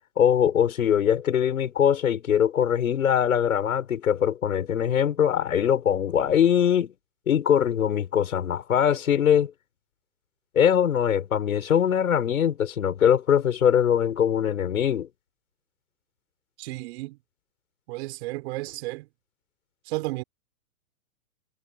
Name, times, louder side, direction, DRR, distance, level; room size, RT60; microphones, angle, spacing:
voice 1, 0.2-6.9 7.3-9.5 10.5-15.1, left 9 dB, 80° left, 7.5 m, -22 dB
voice 2, 16.6-17.2 17.9-19.1 19.9-20.2, right 20 dB, 50° right, 4.3 m, -33 dB
hypercardioid pair, 130°, 42 cm